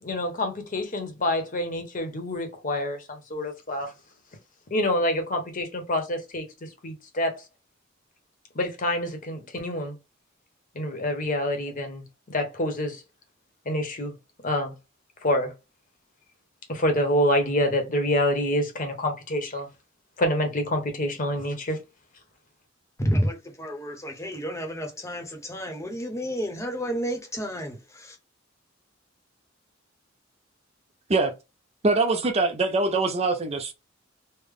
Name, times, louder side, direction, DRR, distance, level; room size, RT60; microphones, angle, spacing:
voice 1, 0.0-3.9 4.7-6.4 6.8-7.4 8.5-9.9 10.7-13.0 13.7-14.1 14.4-14.7 15.2-15.5 16.7-19.7 20.2-21.8, left 1 dB, 45° left, 1.0 m, -27 dB
voice 2, 23.0-28.2, equal, 15° left, 0.8 m, -30 dB
voice 3, 31.8-33.7, right 3 dB, 30° right, 0.5 m, -23 dB
3.3 x 2.1 x 3.7 m
head